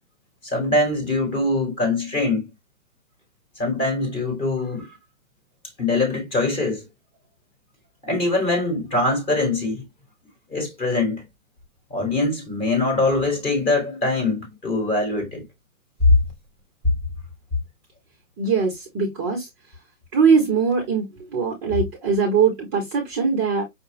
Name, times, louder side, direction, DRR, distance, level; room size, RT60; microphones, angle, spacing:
voice 1, 0.4-2.5 3.6-5.0 5.8-6.9 8.0-9.8 10.5-11.2 11.9-15.4, left 2 dB, 15° left, 1.2 m, -23 dB
voice 2, 18.4-19.5 20.1-23.6, right 5 dB, 15° right, 0.7 m, -21 dB
5.7 x 2.2 x 3.3 m
hypercardioid pair, 145°, 41 cm